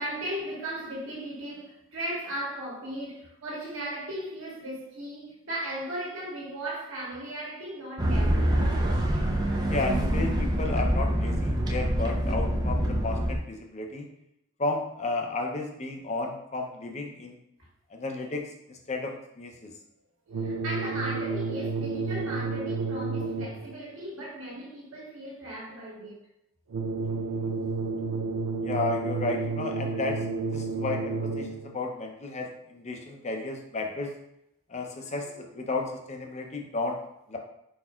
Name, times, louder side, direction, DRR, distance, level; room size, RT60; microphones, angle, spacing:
voice 1, 0.0-8.4 20.4-26.2 33.0-33.3 34.8-35.6 36.3-36.4, right 1 dB, 60° right, 1.5 m, -37 dB
sound 1, 8.0-13.4, right 1 dB, 20° right, 0.4 m, -25 dB
voice 2, 9.7-14.1 14.6-17.3 17.9-18.4 18.7-19.7 28.6-30.2 30.5-34.1 34.7-37.0 37.3-37.4, left 3 dB, 30° left, 0.6 m, -33 dB
sound 2, 20.3-23.8 26.7-31.8, right 4 dB, 90° right, 0.5 m, -31 dB
4.7 x 4.2 x 2.3 m
head